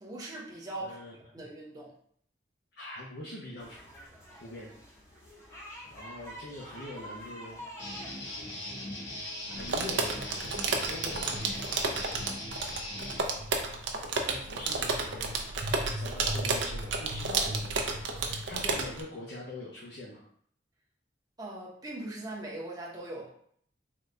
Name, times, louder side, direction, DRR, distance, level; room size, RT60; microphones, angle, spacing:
voice 1, 0.0-1.0 1.3-1.9 21.4-23.3, right 2 dB, 20° right, -4 dB, 0.8 m, -40 dB
voice 2, 0.8-1.5 2.8-3.8 4.4-5.0 5.9-7.6 9.4-11.9 13.7-13.9 14.2-15.4 16.0-20.2, left 1 dB, 60° left, -5 dB, 0.7 m, -44 dB
sound 1, 3.6-10.3, equal, 15° left, 0.7 m, -48 dB
Guitar, 7.8-13.2, left 1 dB, 90° left, 1.4 m, -39 dB
sound 2, 9.6-19.0, right 3 dB, 75° right, 0.5 m, -32 dB
3.9 x 2.3 x 3.2 m, 0.63 s
head